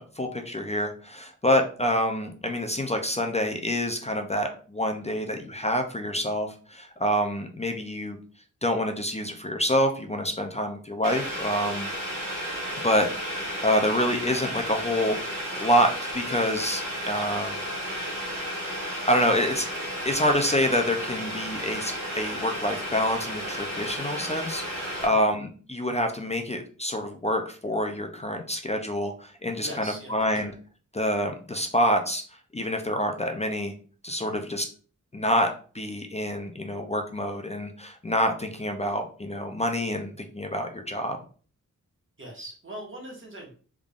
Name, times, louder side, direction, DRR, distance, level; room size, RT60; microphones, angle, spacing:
voice 1, 0.0-8.2 8.6-11.9 12.8-17.6 19.1-19.7 20.0-30.5 30.9-32.2 32.5-33.7 34.0-34.6 35.1-41.2, equal, 20° left, 4 dB, 0.4 m, -27 dB
Boiling, 11.0-25.1, equal, 80° right, 1.3 m, -33 dB
voice 2, 29.6-30.2 30.4-30.5 34.2-34.5 42.2-43.5, right 1 dB, 40° right, -2 dB, 1.4 m, -41 dB
3.5 x 3.5 x 2.4 m, 0.41 s
wide cardioid pair, 105°, 32 cm